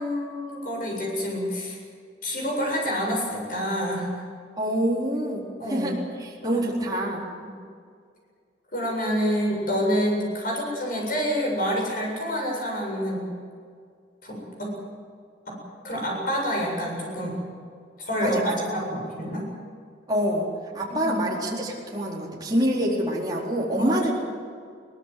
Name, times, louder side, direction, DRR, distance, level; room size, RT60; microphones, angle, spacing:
voice 1, 0.0-1.8 2.2-4.1 5.6-5.9 6.4-6.6 7.4-7.5 8.7-13.3 14.2-14.7 15.5-15.6 15.8-17.4 18.0-19.4 20.9-21.3 23.8-24.1, equal, 45° left, -1 dB, 7.8 m, -28 dB
voice 2, 4.6-7.2 18.2-18.7 20.1-20.5 20.7-24.1, equal, 20° right, -4 dB, 4.3 m, -26 dB
22.0 x 20.0 x 7.8 m, 2.1 s
head